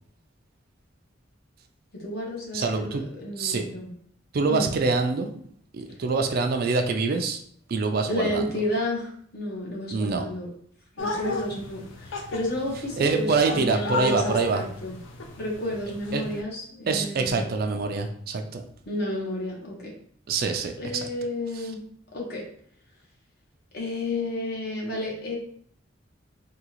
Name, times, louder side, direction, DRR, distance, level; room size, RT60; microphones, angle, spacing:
voice 1, 1.9-3.9 4.5-4.7 8.1-10.5 11.0-15.0 15.4-17.4 18.9-19.9 20.8-21.8 22.1-22.4 23.7-25.4, left 1 dB, 55° left, -3 dB, 1.1 m, -31 dB
voice 2, 2.5-3.0 3.4-3.7 4.3-5.3 5.7-7.4 7.7-8.4 9.9-10.2 13.0-14.6 16.1-16.2 16.9-18.6 20.3-21.1 21.5-21.7, right 4 dB, 50° right, 5 dB, 0.4 m, -25 dB
sound 1, 11.0-16.4, left 3 dB, 75° left, 0.5 m, -35 dB
3.6 x 2.4 x 2.9 m, 0.63 s
head